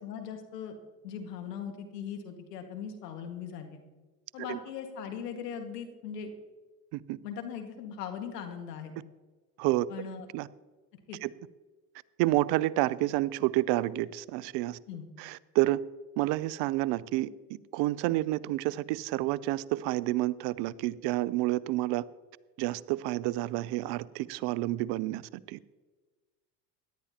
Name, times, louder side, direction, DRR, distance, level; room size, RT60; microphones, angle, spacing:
voice 1, 0.0-0.8 1.0-3.8 4.3-6.3 7.2-8.9 9.9-10.3 11.1-11.2 14.9-15.1, left 7 dB, 90° left, 5 dB, 1.9 m, -39 dB
voice 2, 12.2-14.8 15.2-15.8 16.2-17.3 17.7-22.0 22.6-25.2 25.5-25.6, right 17 dB, 60° right, 18 dB, 0.6 m, -29 dB
17.5 x 11.5 x 2.9 m, 1.3 s
hypercardioid pair, 85°, 46 cm